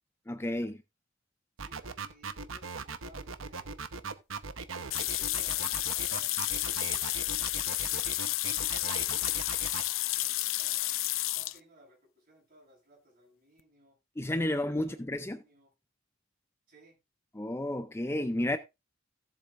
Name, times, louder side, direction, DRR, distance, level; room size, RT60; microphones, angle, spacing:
voice 1, 0.3-0.8 14.2-15.4 17.4-18.6, left 1 dB, 15° left, 0.5 m, -31 dB
voice 2, 1.6-3.8 4.9-8.2 8.7-9.5 10.1-11.0 11.3-14.0 14.5-15.7 16.7-17.0, right 1 dB, 45° right, 7.5 m, -60 dB
sound 1, 1.6-9.8, right 4 dB, 80° right, 0.9 m, -39 dB
sound 2, 4.9-11.6, left 16 dB, 80° left, 0.6 m, -31 dB
17.5 x 7.6 x 2.5 m
head